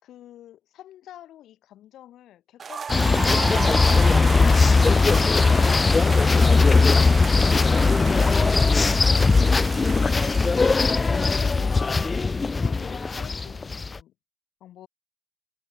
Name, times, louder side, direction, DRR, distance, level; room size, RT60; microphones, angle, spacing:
voice 1, 0.0-10.3 11.1-14.1 14.6-14.9, left 12 dB, 80° left, 4.6 m, -46 dB
sound 1, 2.6-12.4, right 6 dB, 45° right, 1.0 m, -35 dB
sound 2, 2.9-14.0, left 4 dB, 30° left, 0.4 m, -19 dB
cardioid pair, 90°, 0 cm